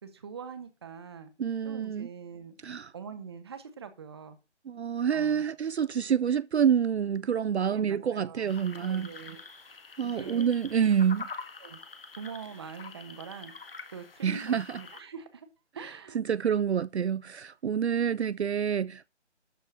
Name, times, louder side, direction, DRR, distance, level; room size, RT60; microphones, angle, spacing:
voice 1, 0.0-1.3 1.6-2.5 2.9-4.4 5.1-5.5 7.7-8.5 8.8-9.4 10.0-10.5 11.6-11.8 12.1-13.6 13.9-15.5 15.7-16.2, right 6 dB, 20° right, 1.2 m, -43 dB
voice 2, 1.4-2.1 2.6-2.9 4.7-9.1 10.0-11.3 14.2-14.8 16.1-19.1, right 8 dB, 65° right, 0.5 m, -27 dB
sound 1, 8.5-15.0, left 4 dB, 55° left, 1.6 m, -46 dB
13.0 x 4.6 x 7.4 m
figure-of-eight pair, 160°, 35 cm